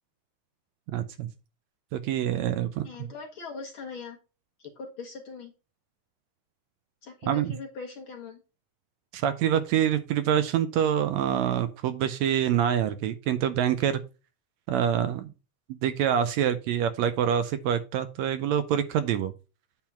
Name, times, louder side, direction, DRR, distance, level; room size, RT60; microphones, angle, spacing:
voice 1, 0.9-1.3 1.9-2.8 7.3-7.5 9.1-14.0 14.7-15.3 15.7-19.3, right 9 dB, 80° right, 11 dB, 1.7 m, -26 dB
voice 2, 2.8-4.2 4.6-5.5 7.0-8.4, left 4 dB, 60° left, 1 dB, 1.5 m, -41 dB
8.8 x 3.7 x 5.7 m, 0.32 s
omnidirectional pair, 3.5 m